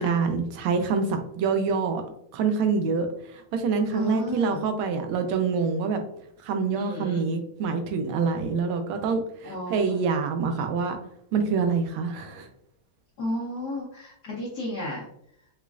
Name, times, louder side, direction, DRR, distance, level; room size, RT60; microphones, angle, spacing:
voice 1, 0.0-2.0 2.3-6.0 6.4-11.0 11.3-12.5, right 5 dB, 85° right, 6 dB, 1.5 m, -26 dB
voice 2, 3.9-4.6 6.7-7.2 9.4-10.0 13.2-15.0, left 1 dB, 65° left, -5 dB, 1.1 m, -32 dB
5.1 x 2.4 x 2.3 m, 0.70 s
omnidirectional pair, 2.2 m